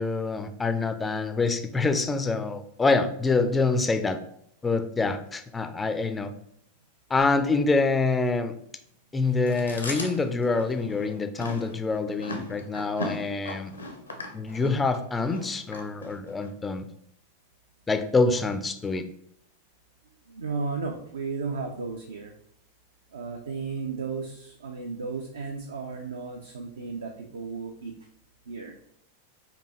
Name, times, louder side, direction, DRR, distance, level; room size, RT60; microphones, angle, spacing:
voice 1, 0.0-4.2 4.6-6.3 7.1-8.5 9.1-13.7 14.3-16.9 17.9-19.1, left 3 dB, 15° left, 9 dB, 0.4 m, -26 dB
Chewing mastication, 9.5-16.5, left 1 dB, 80° left, 0.7 m, -38 dB
voice 2, 20.3-22.3 23.1-27.9 28.5-28.8, right 4 dB, 70° right, 2 dB, 0.5 m, -34 dB
4.5 x 2.8 x 4.0 m, 0.72 s
figure-of-eight pair, 90°, 0 cm